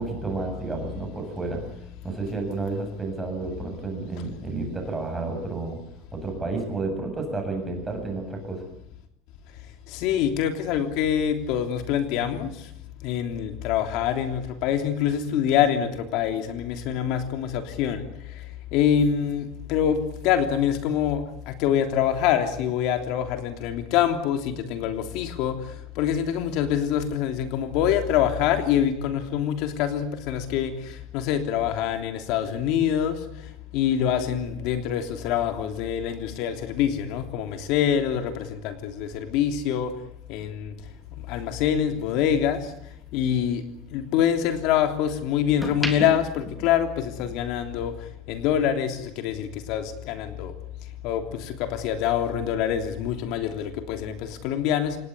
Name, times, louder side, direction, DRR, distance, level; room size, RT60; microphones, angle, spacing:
voice 1, 0.0-1.6 2.0-5.8 6.1-8.6, right 3 dB, 10° right, 3 dB, 7.9 m, -31 dB
voice 2, 9.9-12.5 13.0-18.0 18.3-18.4 18.7-25.6 25.9-33.2 33.7-39.9 40.3-40.7 41.3-42.7 43.1-43.6 43.9-47.9 48.3-50.5 51.0-55.0, left 9 dB, 60° left, 7 dB, 3.1 m, -25 dB
sound 1, 40.8-43.1 43.5-44.9 45.4-47.5 47.8-48.1, equal, 5° left, 3.6 m, -37 dB
28.0 x 19.0 x 9.7 m, 0.75 s
cardioid pair, 155°, 0 cm